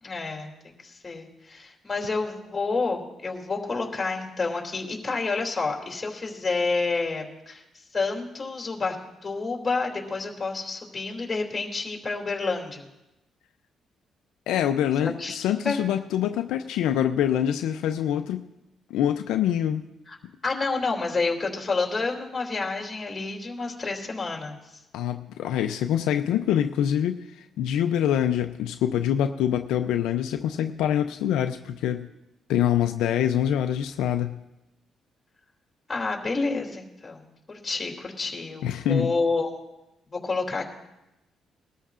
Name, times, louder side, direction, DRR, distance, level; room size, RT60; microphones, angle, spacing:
voice 1, 0.0-7.6 7.9-9.0 9.2-12.9 15.0-15.4 15.6-15.8 20.1-20.2 20.4-24.6 35.9-39.5 40.1-40.7, left 3 dB, 25° left, 0 dB, 2.8 m, -29 dB
voice 2, 14.5-18.5 18.9-19.9 24.9-32.1 32.5-34.4 38.6-39.1, left 10 dB, 90° left, 7 dB, 0.5 m, -25 dB
21.0 x 13.5 x 2.5 m, 0.95 s
cardioid pair, 90°, 0 cm